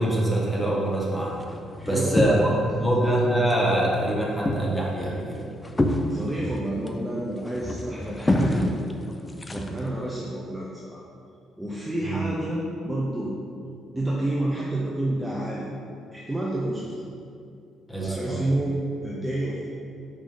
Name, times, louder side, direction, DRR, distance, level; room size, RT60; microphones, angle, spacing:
voice 1, 0.0-1.4 1.8-5.4 9.6-9.8 12.0-12.2 17.9-18.5, right 1 dB, 5° left, -4 dB, 1.5 m, -24 dB
sound 1, 0.8-2.8 3.1-3.8 4.1-10.1, left 1 dB, 20° left, 0.5 m, -28 dB
voice 2, 1.8-2.4 2.8-2.9 6.1-8.7 9.5-11.0 11.6-13.3 13.9-15.7 16.1-16.9 18.0-19.7, right 1 dB, 10° right, -4 dB, 0.8 m, -29 dB
5.1 x 5.0 x 3.7 m, 2.5 s
hypercardioid pair, 45°, 0 cm